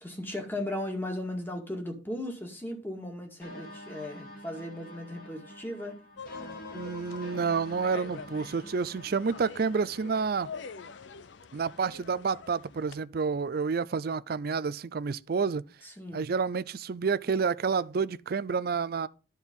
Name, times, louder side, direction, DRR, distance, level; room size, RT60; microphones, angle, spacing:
voice 1, 0.0-6.0 15.8-16.2, left 1 dB, 10° left, 2.0 m, -37 dB
sound 1, 3.4-11.0, equal, 50° left, 2.5 m, -47 dB
sound 2, 6.2-13.0, left 5 dB, 80° left, 0.6 m, -45 dB
voice 2, 6.7-10.5 11.5-15.6 16.1-19.1, right 5 dB, 55° right, 0.4 m, -29 dB
11.5 x 4.5 x 5.3 m
head